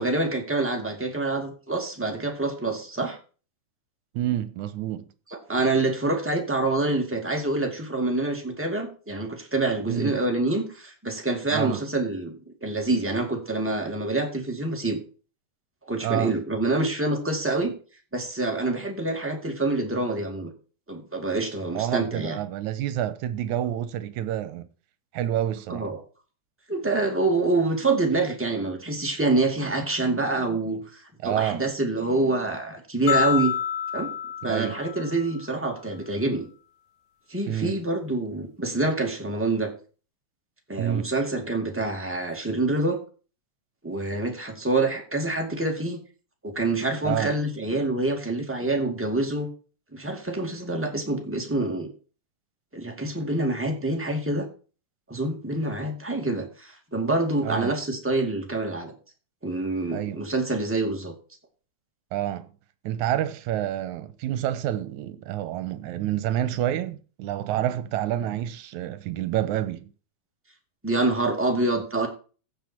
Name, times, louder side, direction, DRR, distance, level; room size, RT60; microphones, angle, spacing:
voice 1, 0.0-3.2 5.3-15.0 15.9-17.7 18.1-20.5 20.9-22.4 25.7-26.0 26.7-33.5 33.9-34.1 34.4-36.5 37.3-39.7 40.7-43.0 43.8-46.0 46.4-49.5 49.9-51.9 52.7-54.5 55.1-58.9 59.4-61.1 70.8-72.1, right 2 dB, 5° right, 1.8 m, -26 dB
voice 2, 4.1-5.0 9.9-10.2 11.5-11.8 16.0-16.3 21.7-24.7 25.1-25.8 31.2-31.6 34.4-34.8 37.5-37.8 40.8-41.1 47.0-47.3 57.4-57.7 59.9-60.2 62.1-62.5 62.8-69.9, right 12 dB, 80° right, 2.3 m, -28 dB
sound 1, 33.1-35.4, left 9 dB, 80° left, 2.4 m, -28 dB
16.0 x 6.0 x 4.4 m
omnidirectional pair, 3.4 m